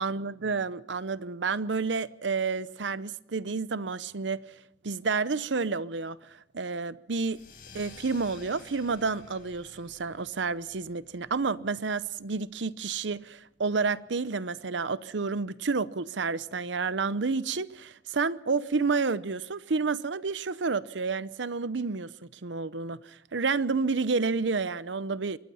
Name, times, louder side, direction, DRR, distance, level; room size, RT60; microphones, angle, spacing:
voice 1, 0.0-4.4 4.8-7.4 7.7-22.1 22.4-25.4, right 4 dB, 85° right, 0.8 m, -30 dB
sound 1, 7.3-12.4, left 3 dB, 50° left, 4.6 m, -52 dB
24.0 x 20.5 x 5.6 m
head